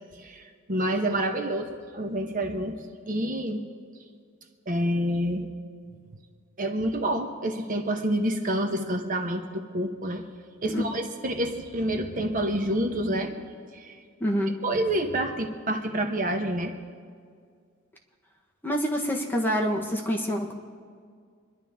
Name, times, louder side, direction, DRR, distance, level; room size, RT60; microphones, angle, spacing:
voice 1, 0.1-2.8 3.1-3.6 4.7-5.5 6.6-10.2 10.6-13.3 13.7-14.0 14.6-16.7, right 1 dB, 40° right, 4 dB, 1.1 m, -28 dB
voice 2, 14.2-14.5 18.6-20.5, equal, 10° left, -1 dB, 1.4 m, -26 dB
27.5 x 11.0 x 3.7 m, 2.1 s
head